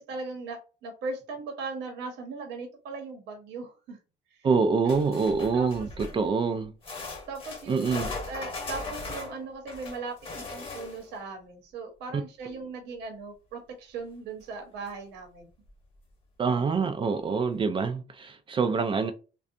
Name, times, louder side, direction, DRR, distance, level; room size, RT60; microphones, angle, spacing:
voice 1, 0.0-4.0 4.4-4.5 5.5-5.7 7.3-7.9 8.3-15.5 16.5-16.7, right 4 dB, 85° right, 0.9 m, -38 dB
voice 2, 4.4-6.7 7.7-8.1 12.1-12.2 16.4-19.1, right 5 dB, 30° right, 0.4 m, -26 dB
sound 1, 4.9-6.3 6.8-11.2 14.4-14.5 14.9-15.0 15.7-15.8, left 3 dB, 35° left, 1.0 m, -38 dB
2.6 x 2.2 x 2.5 m
cardioid pair, 110°, 17 cm